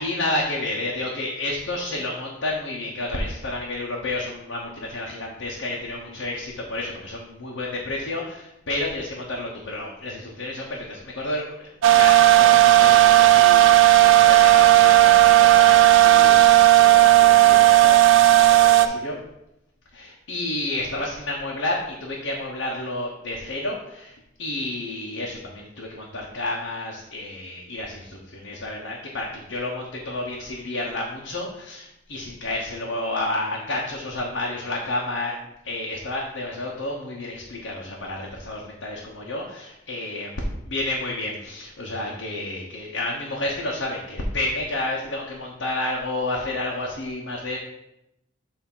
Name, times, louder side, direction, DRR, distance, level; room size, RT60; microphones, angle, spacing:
voice 1, 0.0-16.4 16.7-19.1 19.9-24.1 24.4-35.4 35.6-40.3 40.7-47.6, left 2 dB, 80° left, -3 dB, 1.0 m, -30 dB
sound 1, 11.8-18.9, right 14 dB, 75° right, 0.4 m, -14 dB
7.1 x 2.8 x 5.4 m, 0.86 s
head